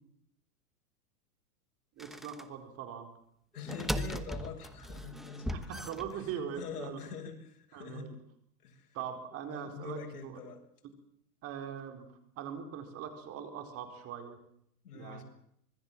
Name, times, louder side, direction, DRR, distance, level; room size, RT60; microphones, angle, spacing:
sound 1, 2.0-2.4 3.5-6.6, equal, ahead, 0.9 m, -38 dB
voice 1, 2.0-3.1 5.5-7.0 7.7-8.2 8.9-10.5 11.4-12.1 12.4-14.4 14.9-15.2, right 8 dB, 30° right, 6 dB, 4.4 m, -41 dB
voice 2, 3.5-5.5 6.6-8.2 8.6-8.9 9.5-10.6 14.8-15.2, left 6 dB, 70° left, 4 dB, 7.0 m, -44 dB
25.5 x 21.5 x 7.5 m, 0.70 s
hypercardioid pair, 145°, 47 cm